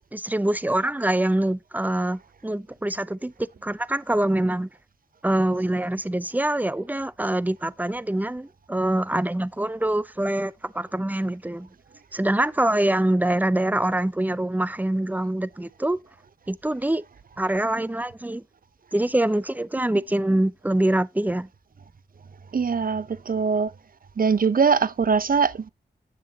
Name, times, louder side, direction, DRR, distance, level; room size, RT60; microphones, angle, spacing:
voice 1, 0.1-4.7 5.2-11.7 12.1-16.0 16.5-17.0 17.4-18.4 18.9-21.5, right 1 dB, 10° right, 0.6 m, -24 dB
voice 2, 22.5-23.7 24.2-25.7, right 5 dB, 50° right, 0.7 m, -22 dB
8.5 x 7.0 x 2.8 m
cardioid pair, 45°, 18 cm